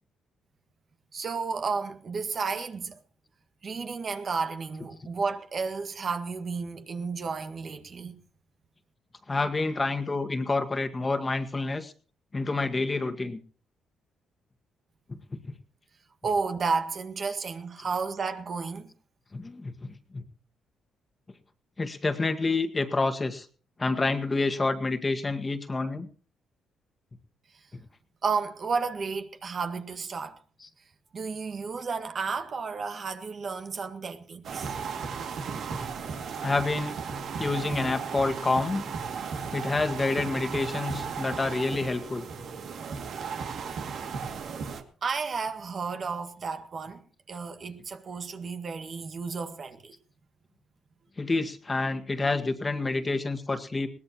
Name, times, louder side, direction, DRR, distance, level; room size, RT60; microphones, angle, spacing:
voice 1, 1.1-3.0 3.6-8.2 16.2-18.9 28.2-30.4 31.1-34.7 45.0-47.0 47.3-49.9, right 5 dB, 45° right, 1.8 m, -32 dB
voice 2, 9.3-11.9 12.3-13.4 15.1-15.2 15.5-15.6 16.2-16.3 19.3-20.2 21.8-23.5 23.8-26.1 30.6-30.7 36.4-37.0 37.4-38.8 39.5-42.3 51.2-53.9, left 3 dB, 25° left, 1.8 m, -28 dB
sound 1, 34.4-44.8, right 6 dB, 65° right, 2.3 m, -35 dB
21.5 x 18.0 x 3.0 m
cardioid pair, 90°, 0 cm